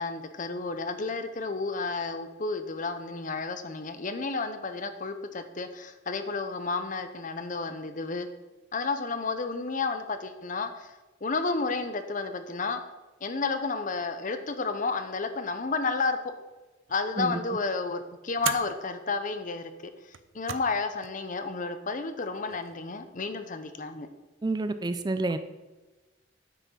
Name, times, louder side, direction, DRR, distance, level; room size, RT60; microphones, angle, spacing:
voice 1, 0.0-8.3 8.7-10.9 11.2-12.8 13.2-16.3 16.9-19.9 20.3-24.1, left 4 dB, 45° left, 9 dB, 0.8 m, -31 dB
sound 1, 16.9-17.3 18.4-18.8 20.0-20.8 21.0-21.1 22.2-22.8, right 9 dB, 90° right, 0.6 m, -36 dB
voice 2, 17.2-17.6 24.4-25.4, right 2 dB, 20° right, 10 dB, 0.4 m, -29 dB
9.1 x 6.0 x 5.7 m, 1.2 s
head